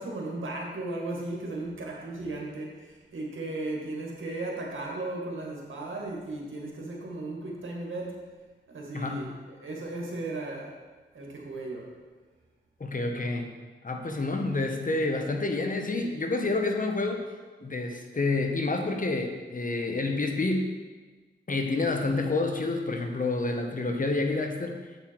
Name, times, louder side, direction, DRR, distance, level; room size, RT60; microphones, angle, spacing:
voice 1, 0.0-8.2 8.7-10.8 11.1-11.9, right 2 dB, 85° right, -1 dB, 2.1 m, -36 dB
voice 2, 8.9-9.3 12.8-13.5 13.8-17.2 17.6-20.7 21.5-24.8, left 3 dB, 45° left, 4 dB, 1.2 m, -28 dB
8.1 x 7.9 x 4.7 m, 1.3 s
cardioid pair, 65°, 20 cm